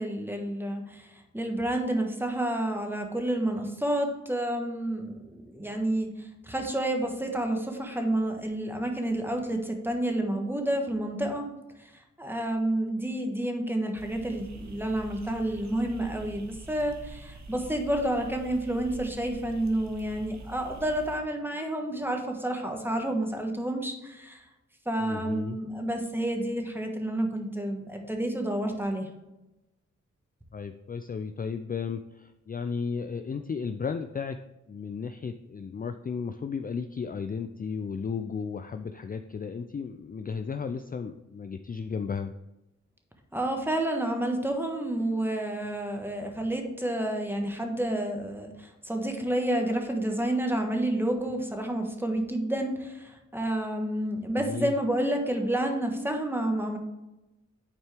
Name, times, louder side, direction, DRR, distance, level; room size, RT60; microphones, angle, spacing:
voice 1, 0.0-11.5 11.8-24.4 24.8-29.1 43.3-56.8, right 1 dB, 5° right, 3 dB, 1.4 m, -30 dB
sound 1, 14.0-21.2, right 2 dB, 65° right, 1.1 m, -45 dB
voice 2, 25.0-25.6 30.5-34.4 34.7-42.3 54.3-54.7, left 5 dB, 30° left, 8 dB, 0.4 m, -34 dB
9.6 x 4.4 x 3.5 m, 0.98 s
cardioid pair, 50°, 30 cm